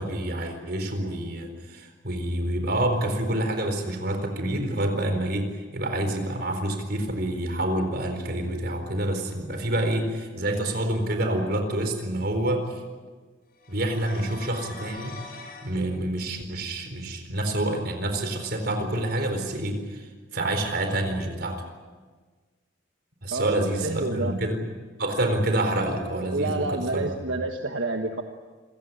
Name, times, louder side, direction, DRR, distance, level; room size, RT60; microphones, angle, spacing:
voice 1, 0.0-12.7 13.7-15.1 15.6-21.6 23.2-24.6 25.0-27.2, right 1 dB, 55° right, 6 dB, 4.3 m, -27 dB
sound 1, 13.6-15.7, left 4 dB, 50° left, 5.6 m, -42 dB
voice 2, 23.3-24.4 26.3-28.2, right 2 dB, 80° right, 4 dB, 1.4 m, -28 dB
26.5 x 16.5 x 9.7 m, 1.4 s
head